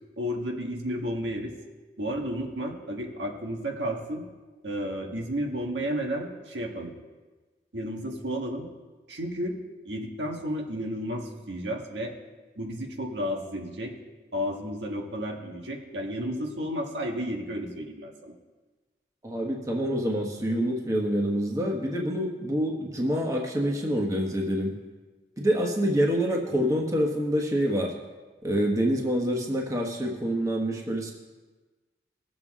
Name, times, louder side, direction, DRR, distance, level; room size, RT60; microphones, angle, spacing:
voice 1, 0.2-1.5 2.0-4.2 4.6-6.9 7.7-8.7 9.1-9.6 9.9-12.1 12.6-13.9 14.3-18.3, equal, 85° right, 1 dB, 1.7 m, -32 dB
voice 2, 19.2-24.7 25.4-27.9 28.4-31.1, equal, 20° right, 0 dB, 1.2 m, -26 dB
19.5 x 7.3 x 3.7 m, 1.3 s
head